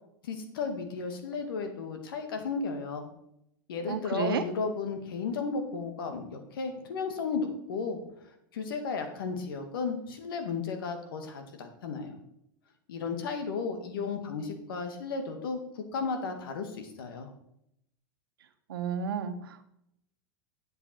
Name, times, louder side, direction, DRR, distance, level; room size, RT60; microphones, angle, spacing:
voice 1, 0.2-3.1 3.7-8.0 8.5-12.2 12.9-17.3, left 5 dB, 75° left, 6 dB, 2.1 m, -34 dB
voice 2, 3.9-4.4 18.7-19.7, right 6 dB, 80° right, 8 dB, 1.3 m, -32 dB
10.5 x 7.8 x 4.5 m, 0.76 s
hypercardioid pair, 105°, 12 cm